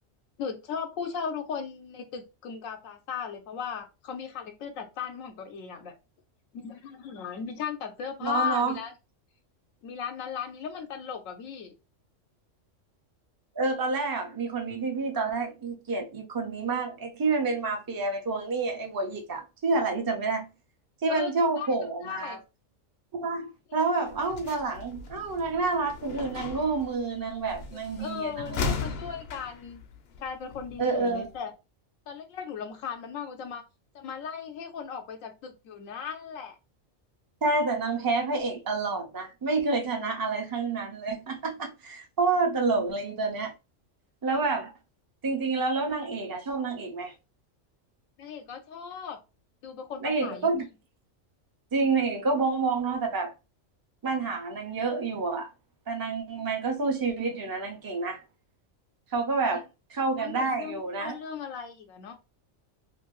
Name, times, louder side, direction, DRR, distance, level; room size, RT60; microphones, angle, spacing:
voice 1, 0.4-5.9 6.5-8.9 9.8-11.7 21.1-21.7 22.0-22.4 28.0-29.9 30.2-31.5 32.1-33.6 33.9-36.6 48.2-49.2 49.6-50.7 56.4-56.5 59.5-59.6 60.2-62.2, left 7 dB, 90° left, 1.0 m, -37 dB
voice 2, 8.2-8.8 13.6-20.5 21.0-22.4 23.1-29.0 30.8-31.3 37.4-43.5 44.2-44.7 45.2-47.1 50.0-50.7 51.7-53.3 54.0-55.5 55.9-58.2 59.1-59.6 59.9-61.2, right 3 dB, 25° right, 0.5 m, -28 dB
sound 1, 24.0-31.4, left 5 dB, 65° left, 0.7 m, -38 dB
2.7 x 2.6 x 3.0 m
omnidirectional pair, 1.3 m